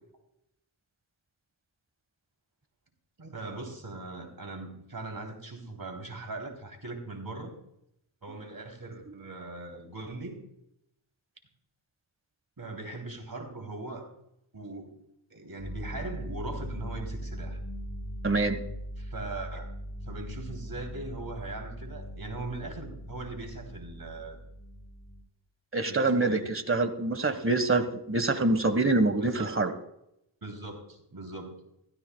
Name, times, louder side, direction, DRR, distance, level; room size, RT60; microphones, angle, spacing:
voice 1, 3.2-7.5 8.2-10.4 12.6-14.1 14.5-14.9 15.3-17.6 19.0-19.7 20.0-24.4 25.8-26.5 29.2-29.7 30.4-31.5, right 2 dB, 45° right, 3 dB, 3.3 m, -40 dB
sound 1, 15.6-25.2, equal, 40° left, 4.4 m, -40 dB
voice 2, 18.2-18.6 25.7-29.7, right 2 dB, 25° right, 10 dB, 1.4 m, -25 dB
15.5 x 14.0 x 2.3 m, 0.79 s
cardioid pair, 40°, 49 cm